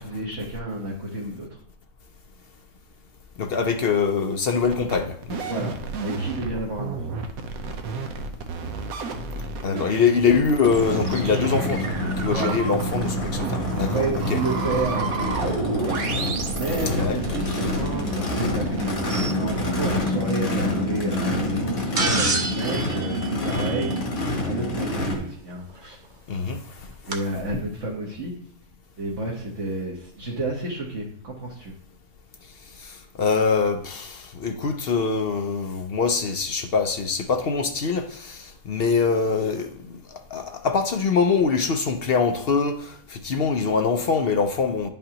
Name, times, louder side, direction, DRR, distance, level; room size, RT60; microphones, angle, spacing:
voice 1, 0.0-1.6 5.4-5.7 6.0-7.1 9.6-9.8 12.3-12.6 13.9-16.0 16.5-24.0 24.4-26.0 27.1-28.3 29.0-31.7, right 2 dB, 60° right, 1.6 m, -30 dB
voice 2, 3.4-5.5 9.6-13.9 17.0-17.2 26.3-26.9 32.8-44.9, left 5 dB, 60° left, 0.7 m, -24 dB
sound 1, 4.6-20.1, right 4 dB, 85° right, 1.3 m, -31 dB
Race car auto racing / Idling / Accelerating revving vroom, 10.6-25.2, left 1 dB, 75° left, 1.8 m, -27 dB
sound 2, 22.0-24.3 25.8-25.9 27.1-27.2, right 3 dB, 40° right, 1.0 m, -28 dB
10.5 x 5.4 x 2.9 m
omnidirectional pair, 1.5 m